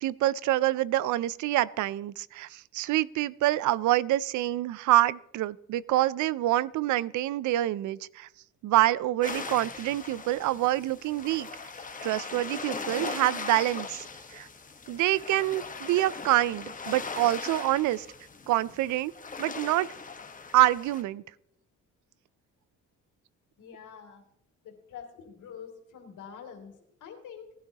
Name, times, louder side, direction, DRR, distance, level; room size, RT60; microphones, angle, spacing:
voice 1, 0.0-8.3 8.6-11.5 12.0-14.0 14.3-14.5 14.9-18.1 18.5-19.1 19.4-19.9 20.5-21.2, right 15 dB, 80° right, 20 dB, 0.5 m, -26 dB
sound 1, 9.2-21.0, left 4 dB, 25° left, 1.3 m, -39 dB
voice 2, 23.6-24.2 24.6-27.5, left 7 dB, 80° left, 2 dB, 3.0 m, -46 dB
18.5 x 12.0 x 2.9 m, 0.76 s
cardioid pair, 90°, 30 cm